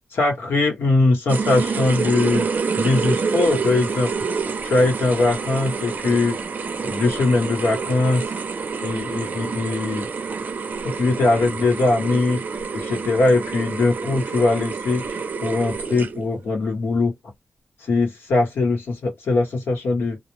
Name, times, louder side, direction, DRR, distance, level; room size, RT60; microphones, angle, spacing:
voice 1, 0.1-2.5 2.8-4.1 4.6-6.4 6.8-8.2 8.8-10.1 10.8-12.4 12.7-17.1 17.9-20.2, left 3 dB, 90° left, 1.2 m, -21 dB
sound 1, 1.3-16.4, right 5 dB, 50° right, 0.5 m, -27 dB
2.3 x 2.1 x 3.1 m
wide cardioid pair, 145°, 4 cm